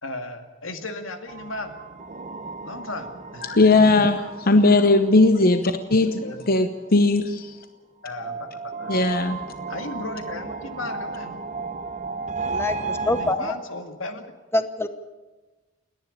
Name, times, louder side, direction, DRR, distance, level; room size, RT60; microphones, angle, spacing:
voice 1, 0.0-1.7 2.6-3.7 6.2-6.4 8.0-9.1 9.7-11.4 13.1-14.2, left 2 dB, 90° left, 6 dB, 2.2 m, -35 dB
sound 1, 1.3-6.6 8.1-13.3, right 4 dB, 40° right, 1.1 m, -34 dB
voice 2, 3.4-7.5 8.9-9.4, left 2 dB, 50° left, 9 dB, 0.9 m, -18 dB
voice 3, 12.5-13.6 14.5-14.9, left 1 dB, 15° left, 10 dB, 0.9 m, -25 dB
29.5 x 10.5 x 8.6 m, 1.2 s
head